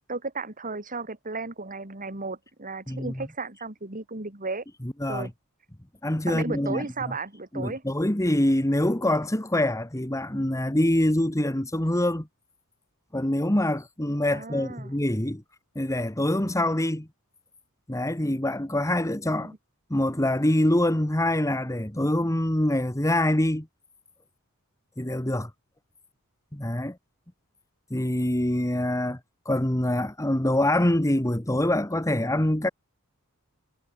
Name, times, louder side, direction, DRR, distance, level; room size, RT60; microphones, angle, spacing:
voice 1, 0.1-4.6 5.1-5.3 6.3-7.8 14.3-14.9 19.4-19.6, right 3 dB, 40° right, 3.5 m, -34 dB
voice 2, 2.9-3.3 4.8-5.3 6.0-7.1 7.5-12.3 13.1-15.4 15.7-17.1 17.9-19.5 19.9-23.7 25.0-25.5 26.5-27.0 27.9-29.2 29.4-32.7, left 1 dB, 15° left, 1.7 m, -25 dB
head